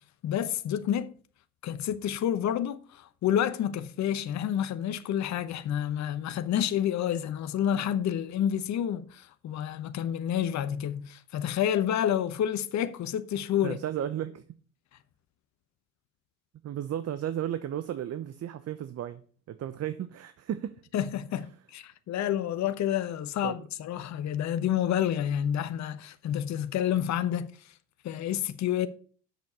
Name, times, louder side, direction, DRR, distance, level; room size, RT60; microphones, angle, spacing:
voice 1, 0.2-1.1 1.6-13.8 20.9-27.7 28.0-28.9, left 10 dB, 50° left, 0.9 m, -29 dB
voice 2, 13.6-14.4 16.6-19.2 19.5-20.7 23.4-23.6, right 11 dB, 40° right, 0.9 m, -34 dB
8.0 x 6.8 x 7.0 m
hypercardioid pair, 70°, 37 cm